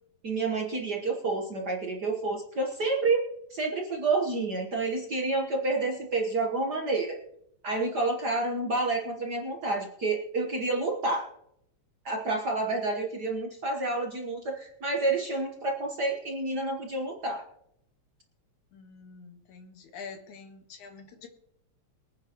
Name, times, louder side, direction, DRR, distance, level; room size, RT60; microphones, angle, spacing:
voice 1, 0.2-7.2 7.6-11.3 12.0-17.4, right 3 dB, 50° right, 0 dB, 1.3 m, -29 dB
voice 2, 18.7-21.3, left 5 dB, 85° left, 5 dB, 2.9 m, -46 dB
23.0 x 9.8 x 3.0 m, 0.77 s
omnidirectional pair, 3.4 m